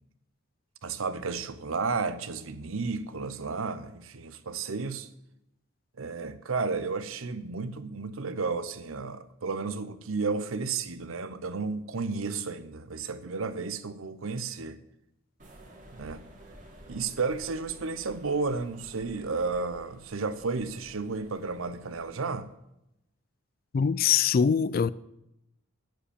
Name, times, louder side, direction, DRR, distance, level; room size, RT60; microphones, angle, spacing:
voice 1, 0.8-5.1 6.0-14.8 15.9-16.2 16.9-22.5, right 4 dB, 85° right, 0.8 m, -32 dB
sound 1, 15.4-22.3, right 1 dB, 40° right, 1.9 m, -52 dB
voice 2, 23.7-24.9, left 7 dB, 45° left, 0.3 m, -23 dB
11.5 x 5.1 x 8.6 m
head